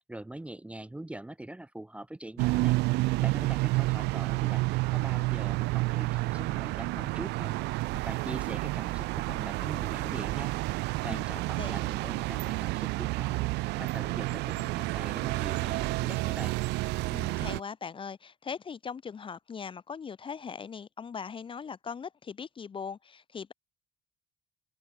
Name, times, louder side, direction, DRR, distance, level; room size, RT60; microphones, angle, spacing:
voice 1, 0.0-2.8 3.2-10.5 11.0-16.6, right 1 dB, 5° right, 0.8 m, -43 dB
sound 1, 2.4-17.6, right 22 dB, 85° right, 0.5 m, -30 dB
voice 2, 17.1-23.5, left 6 dB, 30° left, 0.8 m, -40 dB
open air
cardioid pair, 110°, 17 cm